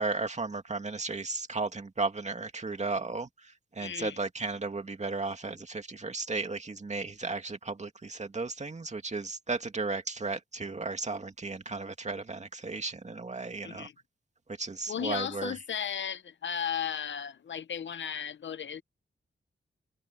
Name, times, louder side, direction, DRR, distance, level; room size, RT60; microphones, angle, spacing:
voice 1, 0.0-13.9 14.5-15.6, right 3 dB, 35° right, 2.3 m, -35 dB
voice 2, 3.8-4.2 13.6-13.9 14.9-18.8, left 8 dB, 70° left, 0.7 m, -35 dB
wide cardioid pair, 90°, 20 cm